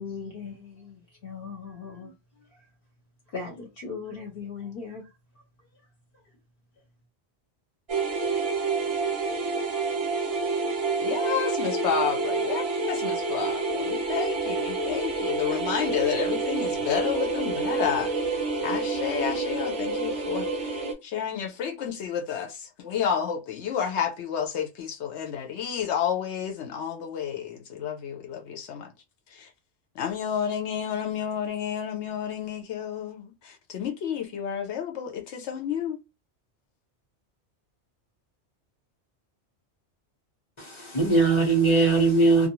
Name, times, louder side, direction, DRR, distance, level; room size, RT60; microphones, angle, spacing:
voice 1, 0.0-2.6 3.3-5.1, left 5 dB, 60° left, 0.9 m, -39 dB
sound 1, 7.9-20.9, right 3 dB, 40° right, 0.6 m, -28 dB
voice 2, 11.0-18.4 18.6-20.5 21.0-28.9 29.3-29.5 30.0-36.0, left 8 dB, 80° left, 0.9 m, -30 dB
voice 3, 40.6-42.5, right 3 dB, 30° left, 0.8 m, -20 dB
2.4 x 2.3 x 2.9 m
omnidirectional pair, 1.2 m